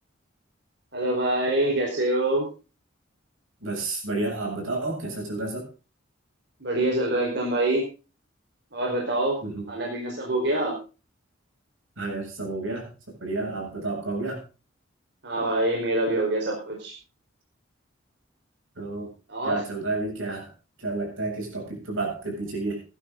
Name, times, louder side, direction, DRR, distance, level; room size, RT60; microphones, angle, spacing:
voice 1, 0.9-2.5 6.6-7.8 8.7-9.4 9.7-10.8 15.2-16.9 19.3-19.6, right 1 dB, 60° right, -2 dB, 4.6 m, -25 dB
voice 2, 3.6-5.7 9.4-9.7 12.0-12.9 13.2-14.4 18.8-19.1 19.4-20.5 20.8-22.8, right 2 dB, 90° right, 0 dB, 7.7 m, -30 dB
18.0 x 11.5 x 3.9 m, 0.34 s
head